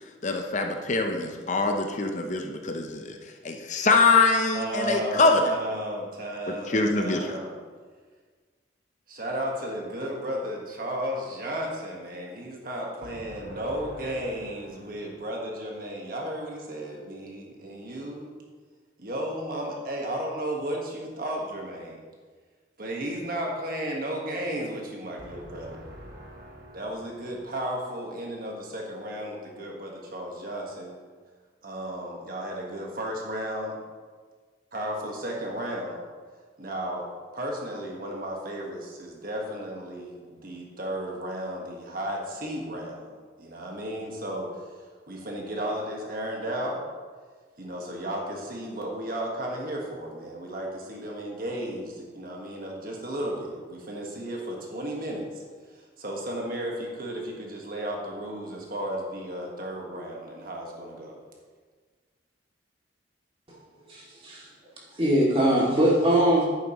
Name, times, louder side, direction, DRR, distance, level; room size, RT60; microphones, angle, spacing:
voice 1, 0.0-5.5 6.5-7.3, left 3 dB, 40° left, 4 dB, 0.7 m, -24 dB
voice 2, 4.5-7.5 9.1-18.3 19.0-22.0 22.8-31.0 31.6-33.8 34.7-36.0 36.6-43.1 43.4-44.5 45.1-46.8 47.6-55.3 55.7-61.2, right 1 dB, 50° right, -1 dB, 1.5 m, -34 dB
voice 3, 63.9-64.5 65.0-66.5, right 1 dB, 30° right, -6 dB, 2.4 m, -21 dB
10.5 x 8.9 x 3.1 m, 1.5 s
head